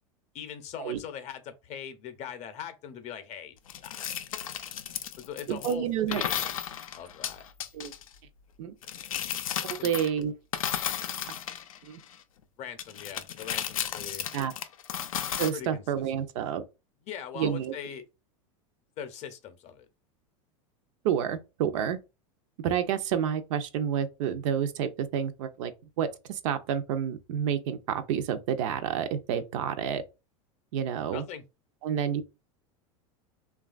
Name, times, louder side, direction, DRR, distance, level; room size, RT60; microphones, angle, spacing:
voice 1, 0.3-3.5 3.8-4.0 5.2-6.5 7.0-7.5 9.8-9.9 12.6-14.3 15.5-15.8 17.0-18.0 19.0-19.9 31.1-31.4, left 8 dB, 40° left, 0.6 m, -41 dB
sound 1, 3.7-5.7 6.1-8.1 8.8-10.2 10.5-12.2 12.8-15.5, left 9 dB, 90° left, 0.4 m, -34 dB
voice 2, 5.5-6.2 7.7-7.9 8.6-8.7 9.7-10.3 11.8-12.0 14.3-14.5 15.4-16.6 17.4-17.7 21.0-22.0 22.6-25.7 26.0-30.0 30.7-31.2 31.8-32.2, right 9 dB, 65° right, 0.5 m, -29 dB
3.1 x 2.3 x 2.3 m
hypercardioid pair, 100°, 17 cm